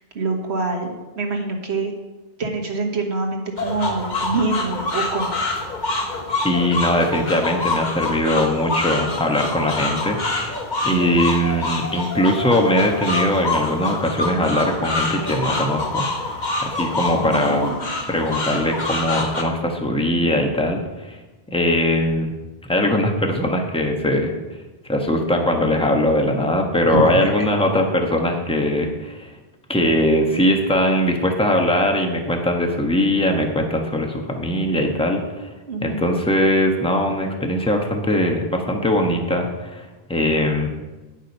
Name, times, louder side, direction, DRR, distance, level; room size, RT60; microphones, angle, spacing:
voice 1, 0.0-1.9 2.4-5.3 10.9-11.0 17.1-17.9 26.9-27.5 35.7-36.0, right 3 dB, 90° right, 1 dB, 1.7 m, -25 dB
sound 1, 3.6-19.4, left 2 dB, 45° left, 1.2 m, -26 dB
voice 2, 6.4-10.6 10.8-16.1 16.6-17.7 18.1-21.2 21.5-22.3 22.7-24.3 24.9-29.3 29.7-35.5 35.8-40.7, left 1 dB, 5° left, 2 dB, 1.2 m, -20 dB
10.0 x 7.4 x 5.4 m, 1.2 s
omnidirectional pair, 1.1 m